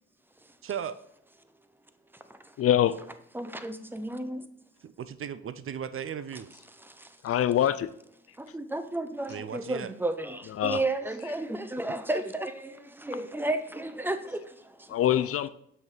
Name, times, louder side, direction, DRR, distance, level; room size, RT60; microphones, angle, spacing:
voice 1, 0.6-1.0 4.8-6.5 9.3-9.9, right 8 dB, 45° right, 0.5 m, -36 dB
voice 2, 2.6-3.0 7.2-7.9 10.6-10.8 14.9-15.5, left 11 dB, 50° left, 0.4 m, -24 dB
voice 3, 3.3-4.4 6.8-7.1 8.4-14.9, right 2 dB, 5° right, 0.6 m, -33 dB
6.8 x 6.1 x 4.0 m
cardioid pair, 90°, 30 cm